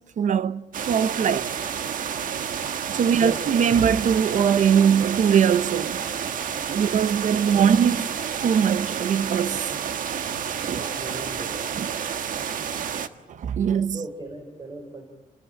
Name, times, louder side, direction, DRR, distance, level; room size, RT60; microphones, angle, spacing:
voice 1, 0.2-1.5 2.9-6.3 6.7-8.0 8.4-9.7 10.7-10.8 11.8-11.9 12.7-12.9 13.3-14.0, right 7 dB, 65° right, 0.9 m, -21 dB
sound 1, 0.7-13.1, right 8 dB, 90° right, 1.5 m, -30 dB
voice 2, 3.1-3.5 7.5-7.7 10.6-11.7 13.9-15.0, right 2 dB, 30° right, 4.5 m, -37 dB
29.5 x 21.0 x 8.9 m
wide cardioid pair, 150°, 14 cm